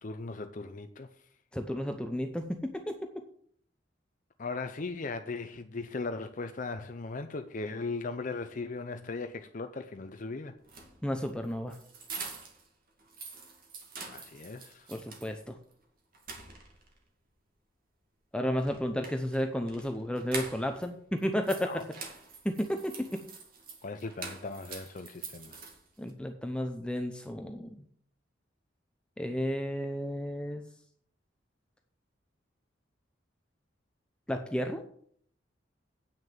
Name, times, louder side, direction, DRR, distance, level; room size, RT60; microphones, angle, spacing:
voice 1, 0.0-1.1 4.4-10.5 14.1-14.9 21.6-21.8 23.8-25.6, left 3 dB, 45° left, 7 dB, 0.6 m, -38 dB
voice 2, 1.5-2.9 11.0-11.8 14.9-15.6 18.3-21.7 22.4-23.2 26.0-27.8 29.2-30.6 34.3-34.8, equal, 5° left, 5 dB, 0.7 m, -32 dB
sound 1, 10.6-12.7 13.0-15.3 15.7-15.8 16.1-17.0 18.6-20.9 21.2-26.1, right 4 dB, 50° right, 2.3 m, -45 dB
9.0 x 6.4 x 7.4 m, 0.62 s
head